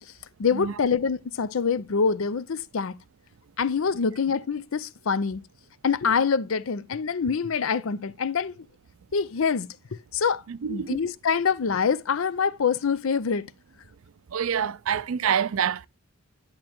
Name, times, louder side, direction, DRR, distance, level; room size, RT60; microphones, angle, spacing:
voice 1, 0.4-2.9 3.6-5.4 5.8-8.7 9.1-9.7 10.1-10.4 10.7-13.4, left 6 dB, 70° left, 0.5 m, -25 dB
voice 2, 10.5-11.0 14.3-15.9, right 8 dB, 75° right, 0.4 m, -26 dB
10.5 x 6.4 x 2.9 m
head